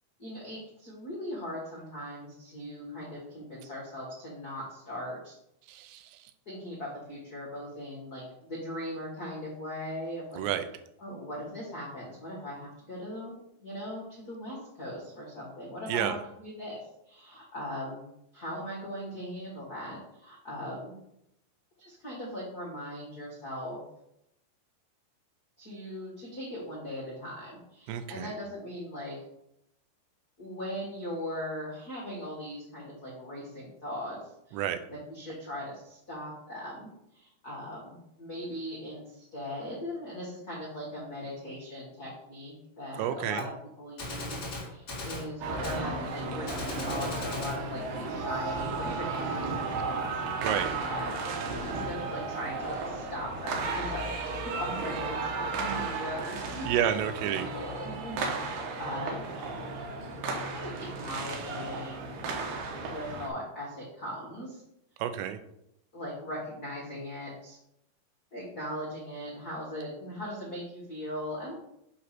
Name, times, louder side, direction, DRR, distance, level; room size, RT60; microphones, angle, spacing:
voice 1, 0.2-5.4 6.4-10.4 11.0-18.0 18.3-20.9 21.8-23.8 25.6-29.2 30.4-34.2 34.5-34.6 34.9-43.5 43.8-51.1 51.6-56.7 57.0-59.3 60.3-62.2 62.9-64.6 65.9-67.6 68.3-71.5, equal, 80° left, -5 dB, 0.8 m, -39 dB
voice 2, 5.7-6.2 10.4-10.6 15.9-16.2 27.9-28.3 34.5-34.8 43.0-43.5 50.4-50.7 56.7-57.5 65.0-65.4, right 10 dB, 85° right, 10 dB, 2.8 m, -30 dB
Gunshot gunfire, 43.4-43.5 44.0-45.3 45.6-45.8 46.5-47.6, left 2 dB, 45° left, 1.3 m, -37 dB
sound 1, 45.4-63.3, right 3 dB, 70° right, 2.3 m, -34 dB
8.3 x 3.2 x 5.8 m, 0.79 s
omnidirectional pair, 4.9 m